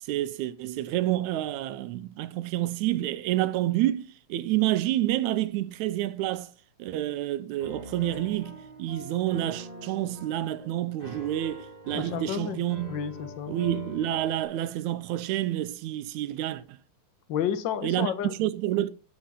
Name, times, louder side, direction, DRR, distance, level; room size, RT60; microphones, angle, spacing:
voice 1, 0.0-6.5 6.8-12.9 13.5-16.8 17.8-18.9, right 14 dB, 80° right, 2.0 m, -29 dB
Piano, 7.6-14.4, left 1 dB, 25° left, 6.5 m, -43 dB
voice 2, 11.9-12.6 12.9-13.5 17.3-18.3, left 9 dB, 60° left, 1.2 m, -31 dB
8.6 x 8.6 x 5.5 m
omnidirectional pair, 3.4 m